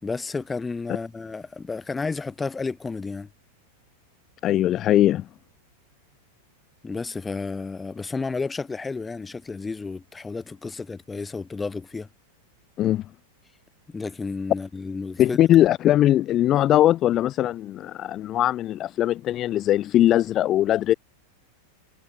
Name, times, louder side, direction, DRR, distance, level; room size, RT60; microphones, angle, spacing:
voice 1, 0.0-3.3 6.8-12.1 13.9-15.4, left 4 dB, 10° left, 4.4 m, -32 dB
voice 2, 4.4-5.3 12.8-13.0 15.2-20.9, left 13 dB, 30° left, 1.1 m, -20 dB
figure-of-eight pair, 90°, 0 cm